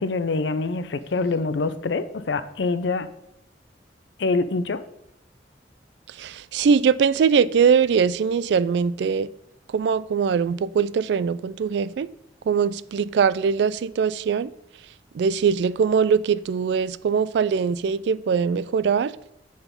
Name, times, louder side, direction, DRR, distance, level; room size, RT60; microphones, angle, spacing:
voice 1, 0.0-3.1 4.2-4.8, left 3 dB, 80° left, 0.5 m, -25 dB
voice 2, 6.2-9.3 9.7-12.1 12.5-14.5 15.2-19.1, right 6 dB, 65° right, 0.3 m, -21 dB
8.0 x 3.9 x 5.1 m
head